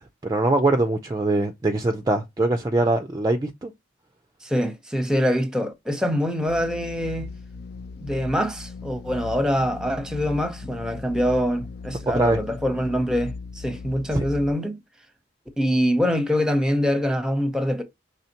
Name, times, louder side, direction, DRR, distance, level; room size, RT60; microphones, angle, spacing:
voice 1, 0.2-3.7 12.1-12.4 14.1-14.2, right 2 dB, 20° right, 0.4 m, -22 dB
voice 2, 4.4-7.3 8.0-14.8 15.6-17.8, equal, 5° right, 0.8 m, -24 dB
sound 1, 6.5-14.5, left 4 dB, 55° left, 0.3 m, -38 dB
5.6 x 3.3 x 2.8 m
head